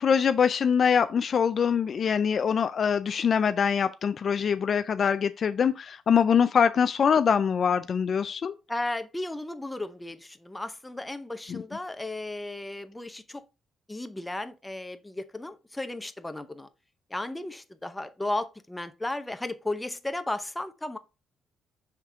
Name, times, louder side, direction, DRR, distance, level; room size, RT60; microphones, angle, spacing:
voice 1, 0.0-8.5 11.5-11.6, left 7 dB, 50° left, 0.3 m, -24 dB
voice 2, 8.7-13.4 13.9-16.7 17.1-21.0, left 2 dB, 10° left, 0.7 m, -34 dB
5.8 x 3.4 x 4.8 m
cardioid pair, 90°, 0 cm